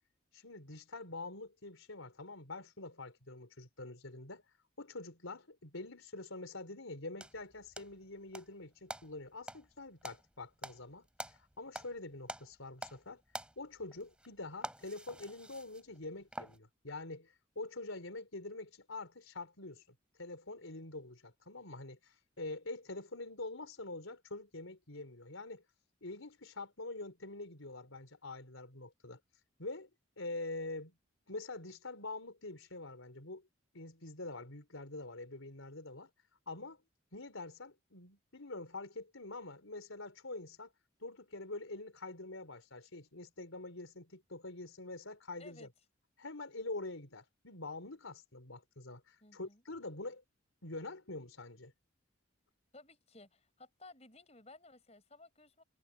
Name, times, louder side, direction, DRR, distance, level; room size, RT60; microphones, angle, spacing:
voice 1, 0.3-4.4 4.8-13.2 13.6-19.8 20.2-25.6 26.0-29.2 29.6-29.9 30.2-30.9 31.3-33.5 33.7-36.1 36.5-36.8 37.1-40.7 41.0-45.7 46.2-50.2 50.6-51.7, left 2 dB, 85° left, 4.3 m, -45 dB
sound 1, 7.2-8.5 8.9-12.0 12.2-13.1 13.3-16.6, right 1 dB, 5° right, 4.6 m, -47 dB
voice 2, 45.4-45.7 49.2-49.6 52.7-55.6, left 2 dB, 30° left, 6.3 m, -57 dB
head